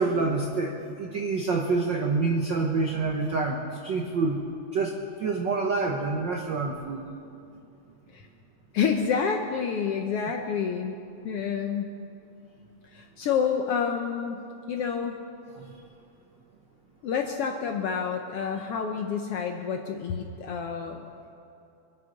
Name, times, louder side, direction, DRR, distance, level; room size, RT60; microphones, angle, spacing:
voice 1, 0.0-4.4 4.7-7.1 15.5-15.7, right 3 dB, 70° right, 1 dB, 1.1 m, -27 dB
voice 2, 8.7-11.0 11.2-11.9 12.9-14.4 14.7-15.2 17.0-21.0, left 6 dB, 70° left, 4 dB, 1.4 m, -28 dB
24.5 x 8.4 x 6.4 m, 2.7 s
omnidirectional pair, 3.4 m